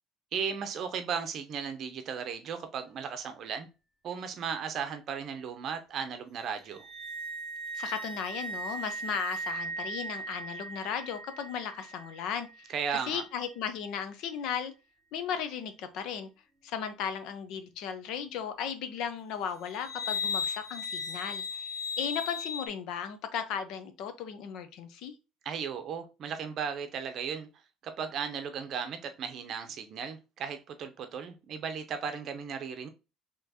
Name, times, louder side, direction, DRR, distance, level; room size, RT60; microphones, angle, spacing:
voice 1, 0.3-3.7 4.0-6.9 12.7-13.2 25.4-27.5 27.8-32.9, right 7 dB, 40° right, 0.7 m, -36 dB
sound 1, 6.7-13.0 19.7-22.7, left 1 dB, 20° right, 1.8 m, -37 dB
voice 2, 7.7-12.7 13.1-14.7 15.1-16.3 16.6-25.1, left 7 dB, 60° left, 0.7 m, -36 dB
4.3 x 3.0 x 2.9 m
cardioid pair, 165°, 0 cm